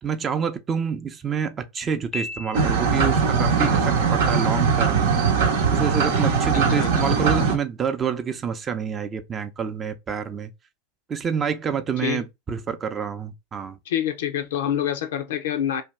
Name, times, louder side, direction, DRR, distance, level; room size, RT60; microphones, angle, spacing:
voice 1, 0.0-5.1 5.7-10.5 11.1-13.8, right 6 dB, 30° right, 0.5 m, -28 dB
Piano, 2.1-3.2, left 3 dB, 30° left, 0.5 m, -35 dB
sound 1, 2.5-7.6, right 5 dB, 75° right, 0.7 m, -20 dB
voice 2, 6.5-6.9 12.0-12.2 13.9-15.8, left 9 dB, 75° left, 0.5 m, -26 dB
2.7 x 2.3 x 3.2 m
hypercardioid pair, 95°, 0 cm